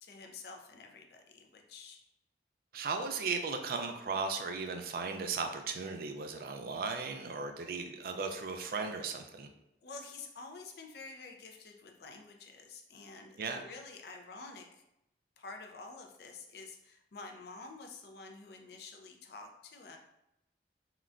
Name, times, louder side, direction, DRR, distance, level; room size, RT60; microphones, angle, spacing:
voice 1, 0.0-2.0 7.6-7.7 9.8-14.8 15.4-20.0, left 3 dB, 60° left, 3 dB, 0.4 m, -49 dB
voice 2, 2.7-9.5 13.4-13.6, right 4 dB, 55° right, 5 dB, 0.3 m, -36 dB
3.7 x 2.2 x 2.4 m, 0.85 s
head